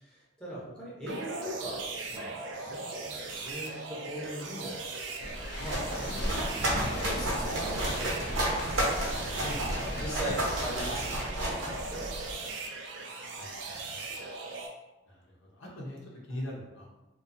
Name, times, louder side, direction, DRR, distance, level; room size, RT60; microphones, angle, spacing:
voice 1, 0.0-4.8 5.6-6.3 6.5-9.0 9.9-12.6 13.7-13.9, equal, 5° left, -9 dB, 0.7 m, -41 dB
sound 1, 1.1-14.7, right 3 dB, 65° right, 0.4 m, -39 dB
sound 2, 5.2-10.5, left 1 dB, 55° left, 0.3 m, -40 dB
sound 3, 5.3-12.3, right 1 dB, 90° right, 0.9 m, -32 dB
voice 2, 15.1-16.0 16.3-16.9, left 1 dB, 80° left, -3 dB, 0.7 m, -40 dB
2.5 x 2.3 x 2.5 m, 1.0 s
head